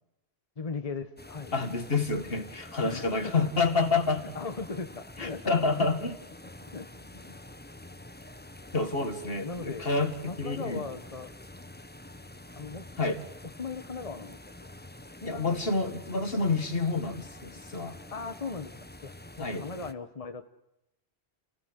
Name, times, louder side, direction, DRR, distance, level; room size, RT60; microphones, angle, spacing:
voice 1, 0.6-1.5 2.8-3.1 4.2-5.9 6.7-7.4 8.9-9.9 10.3-11.3 12.5-12.9 13.6-14.7 15.2-15.6 18.1-18.7 19.0-20.5, left 4 dB, 35° left, 9 dB, 1.2 m, -38 dB
sound 1, 1.2-19.9, left 1 dB, 10° left, 0.8 m, -47 dB
voice 2, 1.5-4.3 5.2-6.1 8.7-10.1 10.4-10.9 13.0-13.2 15.3-18.0 19.4-19.7, left 3 dB, 65° left, 8 dB, 2.3 m, -28 dB
29.5 x 16.0 x 8.0 m, 0.87 s
omnidirectional pair, 1.1 m